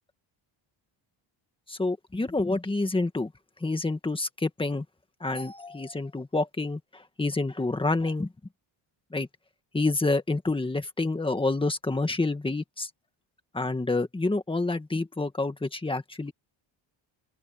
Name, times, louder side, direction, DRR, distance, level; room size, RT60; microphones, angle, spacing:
voice 1, 1.7-3.3 3.6-4.8 5.2-8.3 9.1-9.3 9.7-12.9 13.5-16.3, left 2 dB, 10° left, 1.7 m, -28 dB
open air
cardioid pair, 170°, 50 cm